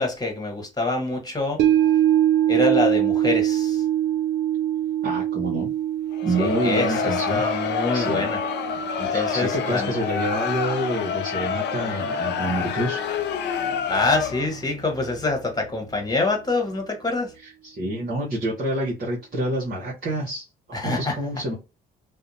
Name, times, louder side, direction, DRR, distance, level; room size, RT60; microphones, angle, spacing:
voice 1, 0.0-1.6 2.5-3.8 6.4-7.0 7.3-8.4 9.0-9.9 13.9-17.3 20.7-21.1, left 2 dB, 20° left, 1.2 m, -25 dB
sound 1, 1.6-12.0 12.3-12.4, right 11 dB, 65° right, 0.5 m, -25 dB
voice 2, 5.0-5.7 6.2-8.3 9.1-13.0 17.4-21.5, right 1 dB, 45° right, 1.0 m, -28 dB
Crowd, 6.1-14.6, left 8 dB, 60° left, 0.4 m, -27 dB
2.7 x 2.1 x 2.6 m
hypercardioid pair, 55°, 20 cm